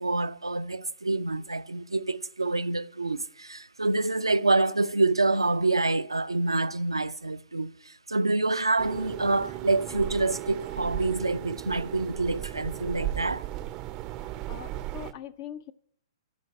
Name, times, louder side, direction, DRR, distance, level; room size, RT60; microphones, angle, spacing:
voice 1, 0.0-13.5, right 2 dB, 85° right, 0.4 m, -27 dB
sound 1, 8.8-15.1, right 15 dB, 30° right, 0.5 m, -36 dB
voice 2, 14.2-15.7, left 10 dB, 40° left, 0.4 m, -42 dB
15.0 x 5.1 x 8.6 m
figure-of-eight pair, 110°, 2 cm